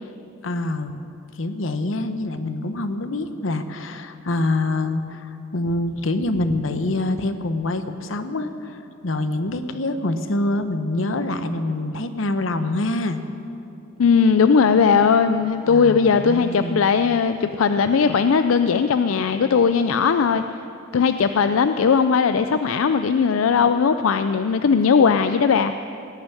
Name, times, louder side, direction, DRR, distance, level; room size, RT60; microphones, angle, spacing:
voice 1, 0.4-1.0 1.4-13.2 15.7-16.9, left 2 dB, 70° left, 9 dB, 0.9 m, -25 dB
voice 2, 14.0-20.4 20.9-25.7, left 6 dB, 85° left, 10 dB, 0.4 m, -18 dB
17.5 x 7.0 x 9.7 m, 2.7 s
head